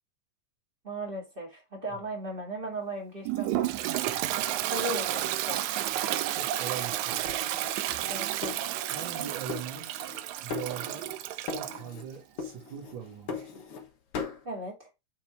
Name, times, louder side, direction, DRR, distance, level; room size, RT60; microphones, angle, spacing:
voice 1, 0.8-3.7 4.0-4.2 4.7-5.6 8.1-8.5 14.4-14.9, right 1 dB, 20° right, 2.0 m, -37 dB
Toilet flush, 3.3-11.8, right 13 dB, 85° right, 1.7 m, -31 dB
voice 2, 6.3-7.3 8.9-10.0 10.4-13.5, right 8 dB, 40° right, 2.1 m, -41 dB
sound 1, 7.3-9.2 9.5-10.2 10.5-11.2 11.5-12.1 12.4-13.9 14.1-14.4, left 5 dB, 55° left, 1.7 m, -39 dB
7.5 x 4.4 x 3.5 m
omnidirectional pair, 3.8 m